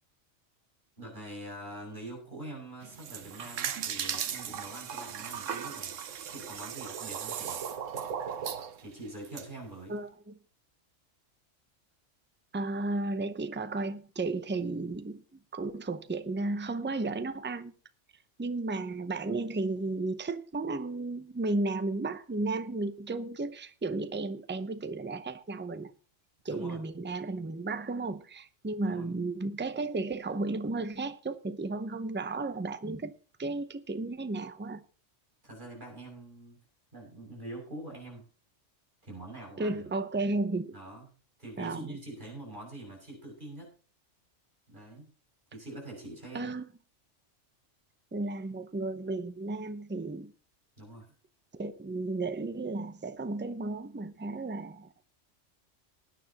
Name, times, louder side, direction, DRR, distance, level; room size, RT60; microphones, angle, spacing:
voice 1, 1.0-7.6 8.8-10.0 26.5-26.8 28.8-29.1 35.4-36.6 36.9-38.2 39.0-39.9 40.7-41.1 41.4-43.7 44.7-45.1 45.5-46.5 50.8-51.1, right 1 dB, 40° right, 6.8 m, -44 dB
sound 1, 2.8-9.4, right 8 dB, 85° right, 1.2 m, -37 dB
voice 2, 9.9-10.3 12.5-17.7 18.4-25.9 26.4-33.1 33.4-34.8 39.6-40.7 41.6-42.0 46.3-46.6 48.1-50.3 51.6-54.9, right 2 dB, 15° right, 0.5 m, -34 dB
19.5 x 9.4 x 2.9 m
omnidirectional pair, 1.3 m